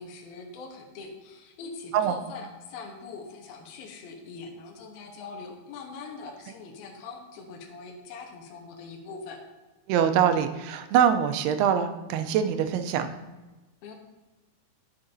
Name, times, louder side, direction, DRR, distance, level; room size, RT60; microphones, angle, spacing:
voice 1, 0.0-9.4 13.8-13.9, left 4 dB, 75° left, 1 dB, 2.8 m, -42 dB
voice 2, 9.9-13.1, right 8 dB, 85° right, 8 dB, 2.6 m, -24 dB
12.0 x 6.9 x 2.6 m, 1.2 s
omnidirectional pair, 4.5 m